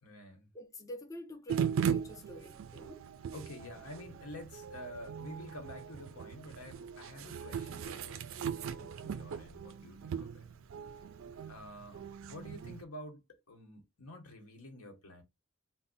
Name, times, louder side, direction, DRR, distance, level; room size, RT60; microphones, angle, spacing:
voice 1, 0.0-0.5 3.3-10.5 10.9-11.0 11.5-15.2, left 1 dB, 85° left, 1.1 m, -49 dB
voice 2, 0.5-3.0 11.3-11.4, equal, 15° left, 0.4 m, -47 dB
sound 1, 1.5-12.8, right 7 dB, 60° right, 0.3 m, -39 dB
2.6 x 2.1 x 3.9 m
head